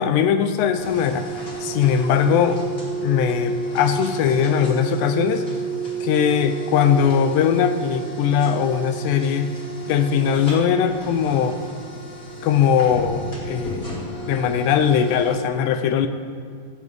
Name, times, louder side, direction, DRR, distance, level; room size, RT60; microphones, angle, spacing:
voice 1, 0.0-1.3 1.6-2.6 3.0-5.5 6.0-9.5 9.9-11.6 12.4-13.8 14.3-16.1, left 8 dB, 85° left, 9 dB, 2.8 m, -20 dB
sound 1, 0.8-15.4, right 3 dB, 30° left, 2.1 m, -32 dB
16.0 x 14.5 x 3.6 m, 2.3 s
omnidirectional pair, 4.8 m